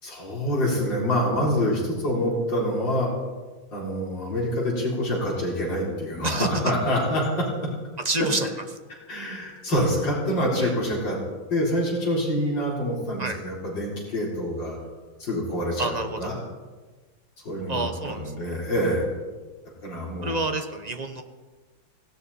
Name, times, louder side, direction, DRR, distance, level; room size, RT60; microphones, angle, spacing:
voice 1, 0.0-3.1 3.7-7.5 9.1-11.2 11.5-14.8 15.2-16.4 17.4-19.1 19.8-20.4, equal, 70° left, -3 dB, 4.7 m, -26 dB
voice 2, 6.2-6.7 8.0-8.5 10.6-10.7 13.2-13.4 15.8-16.3 17.7-18.2 20.2-21.2, right 2 dB, 30° right, 6 dB, 0.9 m, -28 dB
18.0 x 17.0 x 4.2 m, 1.3 s
omnidirectional pair, 2.1 m